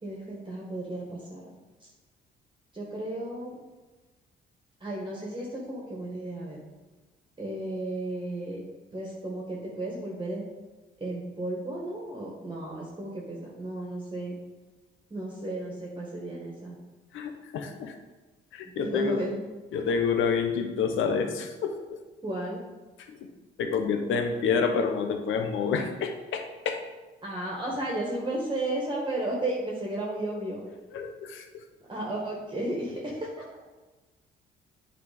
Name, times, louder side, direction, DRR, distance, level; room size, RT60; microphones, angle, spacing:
voice 1, 0.0-1.4 2.7-3.6 4.8-6.6 7.4-8.6 8.9-10.4 11.0-14.4 15.1-16.8 18.8-19.4 22.2-22.6 27.2-30.6 31.9-33.3, right 1 dB, 25° right, -3 dB, 1.7 m, -33 dB
voice 2, 17.1-17.9 18.5-19.2 19.7-21.8 23.0-23.1 23.6-26.8 30.9-31.6, left 5 dB, 80° left, 5 dB, 1.0 m, -28 dB
8.3 x 4.3 x 5.2 m, 1.2 s
cardioid pair, 90°, 20 cm